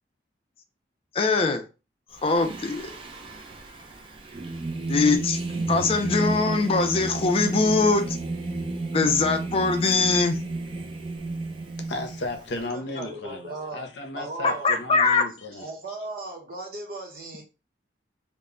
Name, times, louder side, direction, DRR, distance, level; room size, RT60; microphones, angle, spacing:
voice 1, 1.1-1.6 2.2-2.9 4.9-5.4 5.7-8.2 8.9-10.4 14.4-15.3, left 4 dB, 35° left, 0.4 m, -22 dB
Singing, 2.2-12.6, right 3 dB, 30° right, 0.4 m, -32 dB
voice 2, 11.9-15.7, left 2 dB, 80° left, 0.5 m, -35 dB
voice 3, 12.6-13.8 14.2-14.8 15.5-17.4, right 2 dB, 55° right, 0.8 m, -37 dB
2.1 x 2.1 x 3.6 m
head